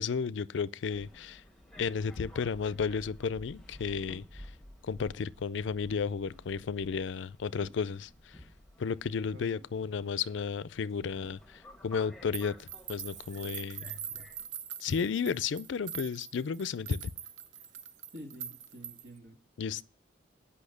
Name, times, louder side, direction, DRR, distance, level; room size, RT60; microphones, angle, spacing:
voice 1, 0.0-1.4 1.8-4.5 4.8-8.4 8.8-14.0 14.8-17.1 19.6-19.8, left 6 dB, 80° left, 0.4 m, -33 dB
Subway metro underground, 0.9-14.5, left 1 dB, 5° left, 1.2 m, -53 dB
sound 1, 12.3-19.2, right 9 dB, 80° right, 0.7 m, -43 dB
voice 2, 18.1-19.4, equal, 60° right, 2.3 m, -48 dB
8.5 x 5.7 x 8.0 m
head